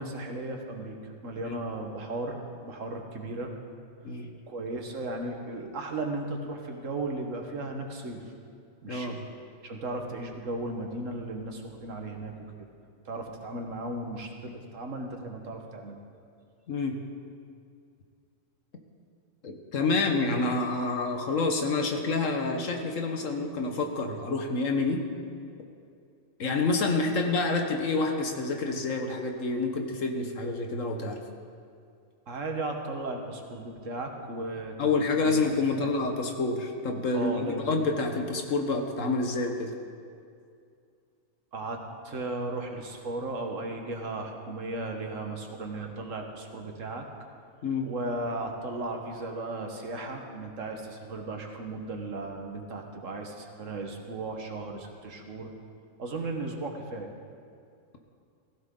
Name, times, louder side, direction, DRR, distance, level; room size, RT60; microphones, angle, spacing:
voice 1, 0.0-3.5 4.5-8.2 8.8-9.2 9.6-12.3 13.0-16.0 32.3-35.3 35.8-35.9 37.1-37.7 41.5-47.1 47.8-55.5 56.0-57.1, right 2 dB, 70° right, 3 dB, 1.7 m, -36 dB
voice 2, 8.9-9.2 16.7-17.0 19.4-25.0 26.4-31.2 34.8-39.7 47.6-47.9, left 3 dB, 70° left, 4 dB, 1.6 m, -28 dB
16.5 x 15.0 x 3.9 m, 2.4 s
omnidirectional pair, 1.4 m